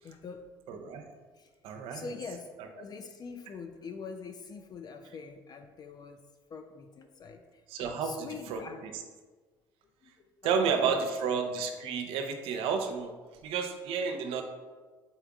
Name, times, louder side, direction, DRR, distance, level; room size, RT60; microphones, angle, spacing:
voice 1, 0.0-0.5 1.3-1.5 1.9-6.2 6.5-7.6 8.0-8.8 10.0-10.1 10.4-11.1, left 5 dB, 40° left, 6 dB, 0.4 m, -44 dB
voice 2, 0.7-1.0 1.6-2.1 7.7-8.9 10.4-13.1 13.4-14.4, right 6 dB, 65° right, 4 dB, 0.6 m, -31 dB
4.2 x 3.5 x 3.5 m, 1.4 s
hypercardioid pair, 60°, 10 cm